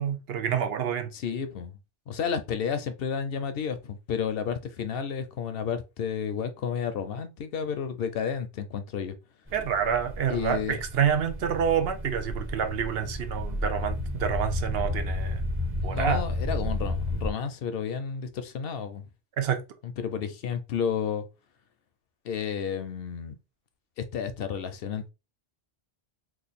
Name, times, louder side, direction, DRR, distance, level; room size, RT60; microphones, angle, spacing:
voice 1, 0.0-1.1 9.5-15.4 15.8-16.2 19.4-19.6, right 8 dB, 70° right, 0.8 m, -28 dB
voice 2, 1.1-1.8 2.1-9.1 10.3-10.8 15.8-19.0 19.8-21.3 22.2-23.4 24.0-25.1, left 7 dB, 70° left, 0.7 m, -31 dB
sound 1, 9.5-17.3, left 1 dB, 15° right, 0.7 m, -32 dB
3.1 x 2.4 x 4.0 m
omnidirectional pair, 1.1 m